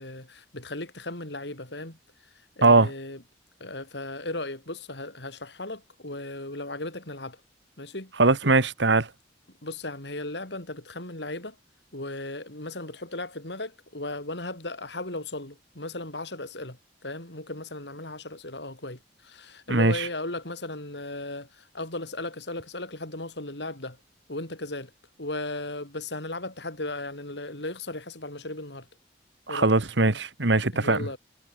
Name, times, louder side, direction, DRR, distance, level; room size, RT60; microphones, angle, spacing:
voice 1, 0.0-2.0 2.6-3.2 3.6-7.4 7.8-8.1 9.6-11.6 11.9-24.0 24.3-24.9 25.2-28.9 29.5-29.7 30.7-31.2, left 2 dB, 70° left, 5.3 m, -36 dB
voice 2, 8.2-9.1 19.7-20.0 29.5-31.0, right 3 dB, 75° right, 1.8 m, -21 dB
head